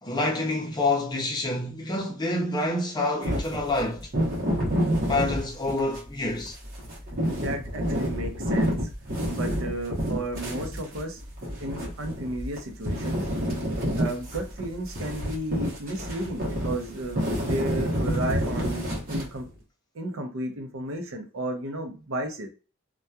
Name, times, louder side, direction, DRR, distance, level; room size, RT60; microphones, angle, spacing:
voice 1, 0.0-4.1 5.1-6.5, left 2 dB, 20° left, 0.6 m, -27 dB
sound 1, 3.2-6.1 6.5-12.6 12.8-19.5, equal, 45° right, 0.9 m, -28 dB
voice 2, 7.3-8.9 9.3-11.2 11.6-13.3 13.9-19.5 19.9-22.5, right 1 dB, 70° right, 0.6 m, -33 dB
2.7 x 2.2 x 2.2 m
head